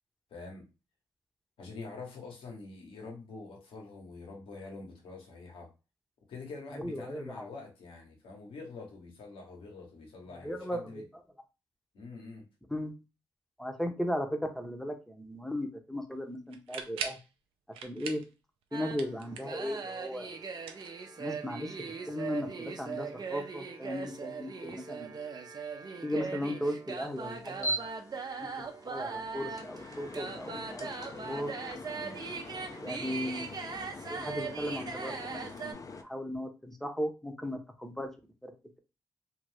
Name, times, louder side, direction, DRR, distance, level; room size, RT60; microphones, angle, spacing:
voice 1, 0.3-0.7 1.6-5.7 6.3-11.0 11.9-12.5 31.9-32.3, left 3 dB, 75° left, 1.1 m, -46 dB
voice 2, 6.7-7.5 10.3-11.0 12.7-12.9 13.6-17.2 17.7-18.2 18.7-20.4 21.2-21.8 22.1-25.2 26.0-27.9 28.4-31.5 32.8-33.6 34.0-38.1 38.4-38.5, equal, 5° left, 0.8 m, -37 dB
sound 1, 16.5-17.3 17.7-18.3 18.6-19.7 20.5-21.5, right 7 dB, 85° right, 0.5 m, -41 dB
sound 2, 18.7-35.7, right 5 dB, 45° right, 0.7 m, -40 dB
sound 3, 27.0-36.0, equal, 40° left, 0.6 m, -42 dB
2.6 x 2.5 x 3.3 m
hypercardioid pair, 45°, 9 cm